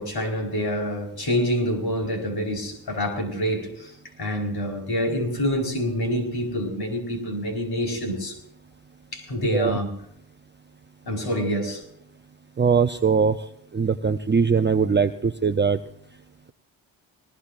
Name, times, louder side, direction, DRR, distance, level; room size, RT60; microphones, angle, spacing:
voice 1, 0.0-3.9 4.2-8.4 9.1-9.9 11.1-11.8, equal, 55° left, 2 dB, 4.7 m, -26 dB
voice 2, 12.6-13.5 13.7-15.8, right 5 dB, 25° right, 8 dB, 0.7 m, -21 dB
19.5 x 19.5 x 2.6 m, 0.69 s
cardioid pair, 55°, 47 cm